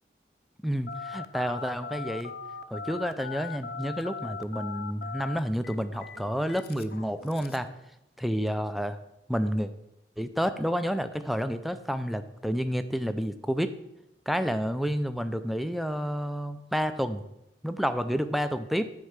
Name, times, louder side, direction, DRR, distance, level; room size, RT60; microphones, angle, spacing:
voice 1, 0.6-2.3 2.7-7.7 8.2-9.0 9.3-9.7 10.2-13.8 14.3-17.2 17.6-18.9, equal, ahead, 10 dB, 0.4 m, -30 dB
Telephone, 0.9-7.7, left 5 dB, 60° left, 0.5 m, -39 dB
9.6 x 4.5 x 6.5 m, 0.87 s
head